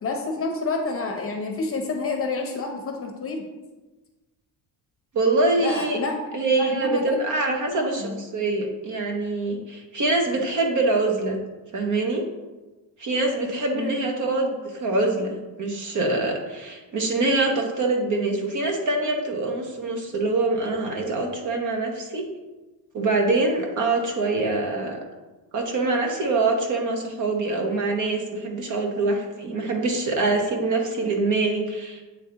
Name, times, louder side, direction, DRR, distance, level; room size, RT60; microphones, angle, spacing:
voice 1, 0.0-3.4 5.6-6.2 6.5-7.2 7.7-8.2 13.7-14.0, left 4 dB, 30° left, 3 dB, 0.8 m, -29 dB
voice 2, 5.1-6.0 6.3-11.4 11.7-12.2 13.0-22.2 22.9-25.0 25.5-32.0, right 2 dB, 45° right, 2 dB, 1.0 m, -24 dB
8.3 x 3.4 x 3.8 m, 1.2 s
cardioid pair, 160°, 43 cm